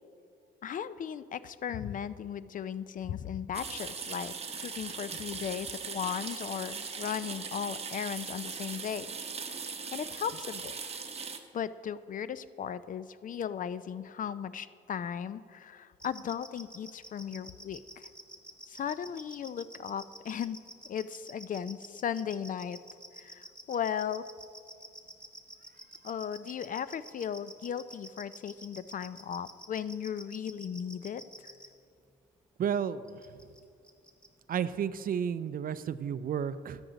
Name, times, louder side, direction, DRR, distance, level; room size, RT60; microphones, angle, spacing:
voice 1, 0.6-9.2 9.4-10.8 11.5-18.1 18.7-20.6 20.9-22.8 23.2-24.3 26.0-31.5, left 8 dB, 45° left, 15 dB, 0.4 m, -37 dB
sound 1, 3.5-11.4, right 5 dB, 30° right, 0.9 m, -39 dB
sound 2, 16.0-31.7 33.1-33.6 33.8-34.3, equal, 5° left, 0.9 m, -48 dB
voice 2, 32.6-33.2 34.5-36.8, right 8 dB, 45° right, 14 dB, 0.4 m, -32 dB
11.5 x 7.8 x 3.9 m, 2.3 s
cardioid pair, 90°, 20 cm